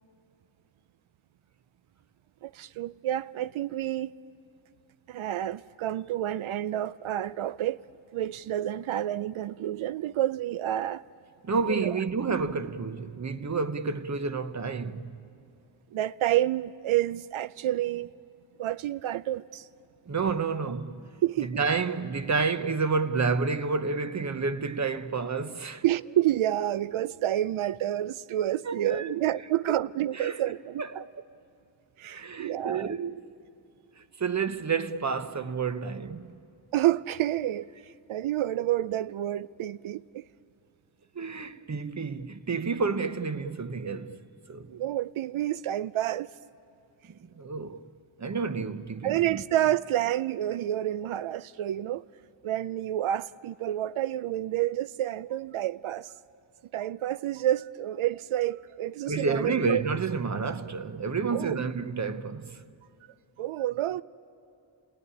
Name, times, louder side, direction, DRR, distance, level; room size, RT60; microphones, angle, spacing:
voice 1, 2.4-4.1 5.1-7.8 8.1-11.0 11.7-12.0 15.9-18.1 18.6-19.7 21.2-21.6 25.8-31.0 32.0-32.9 36.7-37.7 38.1-40.3 44.7-46.3 49.0-52.1 52.4-56.1 56.7-59.8 61.3-61.6 63.4-64.0, right 13 dB, 90° right, 0.5 m, -29 dB
voice 2, 11.4-15.2 20.1-21.0 21.4-25.8 28.7-29.2 30.1-30.4 30.8-30.9 32.0-33.2 34.0-36.3 41.1-44.2 44.5-44.7 47.1-47.8 48.2-49.4 59.1-62.6, right 4 dB, 35° right, 0.8 m, -30 dB
29.5 x 19.0 x 9.9 m
wide cardioid pair, 140°, 47 cm